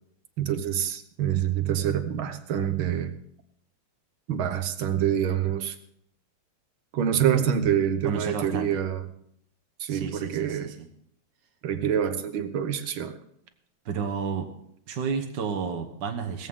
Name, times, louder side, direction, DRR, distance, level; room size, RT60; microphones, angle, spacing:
voice 1, 0.4-3.1 4.3-5.8 6.9-9.1 9.8-10.7 11.6-13.2, right 9 dB, 75° right, 10 dB, 1.9 m, -26 dB
voice 2, 8.0-8.8 9.9-10.9 13.9-14.5 14.9-16.5, right 6 dB, 60° right, 4 dB, 1.7 m, -31 dB
18.0 x 14.5 x 3.7 m, 0.71 s
omnidirectional pair, 2.3 m